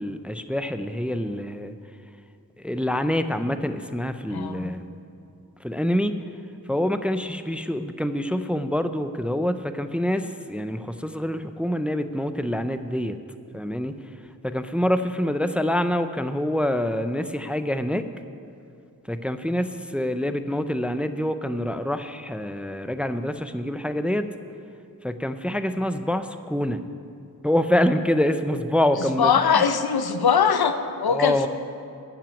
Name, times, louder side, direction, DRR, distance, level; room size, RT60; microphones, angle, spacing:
voice 1, 0.0-1.7 2.6-4.8 5.6-6.1 6.7-13.2 13.5-13.9 14.4-18.0 19.1-24.3 25.0-26.8 27.4-29.6 31.1-31.5, left 1 dB, 5° right, 10 dB, 0.4 m, -26 dB
voice 2, 4.3-4.7 29.0-31.5, left 6 dB, 85° left, 9 dB, 0.7 m, -22 dB
12.0 x 6.0 x 8.9 m, 2.5 s
wide cardioid pair, 70°, 37 cm